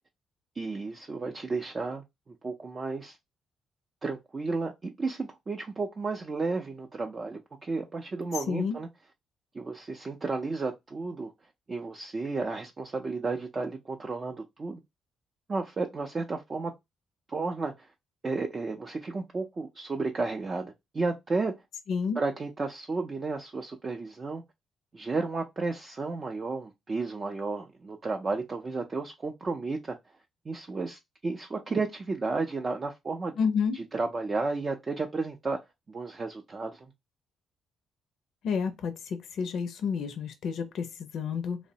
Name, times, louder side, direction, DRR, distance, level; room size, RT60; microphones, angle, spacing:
voice 1, 0.6-3.2 4.0-8.9 9.5-11.3 11.7-14.8 15.5-16.7 17.3-17.9 18.2-21.5 22.2-24.4 24.9-30.0 30.5-33.3 33.7-35.6 35.9-36.9, right 3 dB, 35° right, 0.4 m, -33 dB
voice 2, 21.9-22.2 33.4-33.8 38.4-41.6, left 6 dB, 70° left, 0.4 m, -30 dB
2.9 x 2.0 x 2.6 m
cardioid pair, 90°, 0 cm